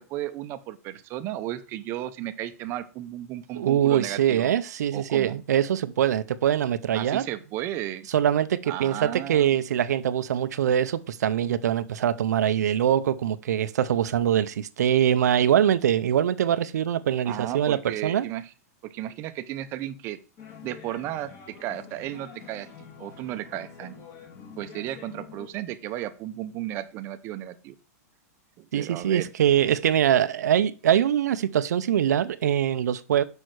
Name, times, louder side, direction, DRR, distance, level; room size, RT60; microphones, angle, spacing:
voice 1, 0.0-4.5 4.9-5.3 6.9-8.1 8.7-9.6 17.3-18.5 18.8-20.2 20.6-22.7 23.0-23.9 24.6-27.7 28.6-29.3, right 13 dB, 30° right, 0.6 m, -34 dB
voice 2, 3.6-7.2 8.1-18.3 28.7-33.2, right 10 dB, 90° right, 0.5 m, -23 dB
sound 1, 20.4-25.5, left 6 dB, 30° left, 1.9 m, -46 dB
6.4 x 5.3 x 4.6 m
supercardioid pair, 155°, 9 cm